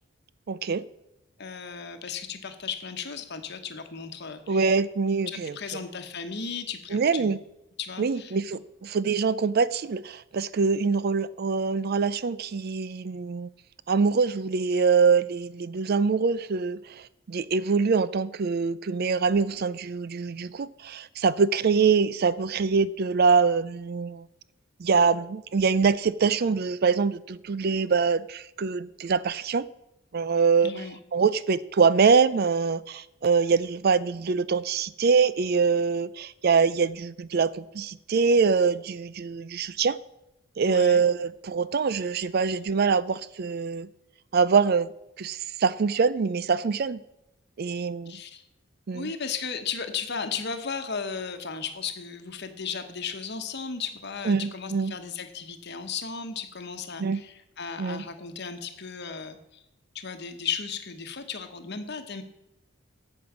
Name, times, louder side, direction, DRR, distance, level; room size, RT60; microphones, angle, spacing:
voice 1, 0.5-0.8 4.5-5.5 6.9-7.4 8.0-13.5 13.9-24.3 24.8-29.6 30.1-30.7 31.1-40.0 40.6-43.9 44.3-44.9 45.2-47.0 47.6-48.2 48.9-49.1 54.3-54.9 57.0-57.2 57.8-58.0, right 5 dB, 50° right, 0.4 m, -24 dB
voice 2, 1.4-4.7 5.3-7.3 7.8-8.3 30.6-31.0 40.7-41.0 48.1-48.4 48.9-59.6 59.9-62.2, left 6 dB, 55° left, 1.1 m, -35 dB
8.6 x 7.8 x 7.2 m
head